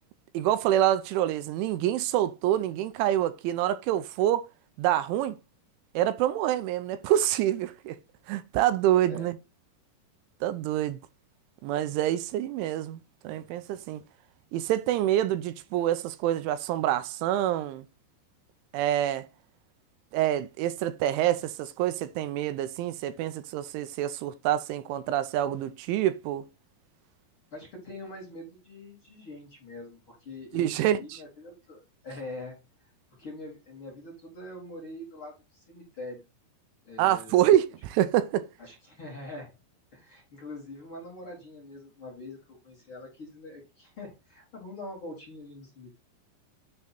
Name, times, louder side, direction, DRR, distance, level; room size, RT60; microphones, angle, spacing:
voice 1, 0.3-4.5 4.8-5.4 6.0-8.0 8.3-9.4 10.4-11.0 11.6-14.0 14.5-17.9 18.7-19.3 20.1-26.4 30.5-31.2 37.0-38.5, right 12 dB, 85° right, 3.0 m, -26 dB
voice 2, 27.5-32.6 33.2-36.2 36.8-37.5 38.6-39.5 39.9-42.4 42.6-46.0, left 2 dB, 35° left, 2.3 m, -43 dB
9.8 x 3.6 x 4.2 m
omnidirectional pair, 5.5 m